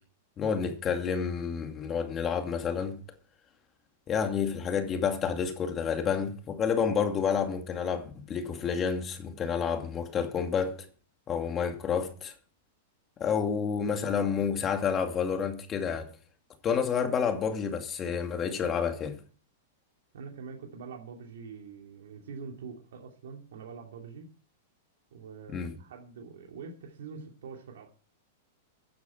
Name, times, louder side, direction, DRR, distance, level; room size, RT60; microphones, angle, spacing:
voice 1, 0.4-3.0 4.1-10.9 11.3-12.3 13.2-16.1 16.6-19.1 25.5-25.7, left 6 dB, 25° left, 2.4 m, -29 dB
voice 2, 20.1-24.3 25.1-27.9, right 5 dB, 80° right, 2.8 m, -44 dB
14.5 x 9.6 x 4.5 m
hypercardioid pair, 140°, 0 cm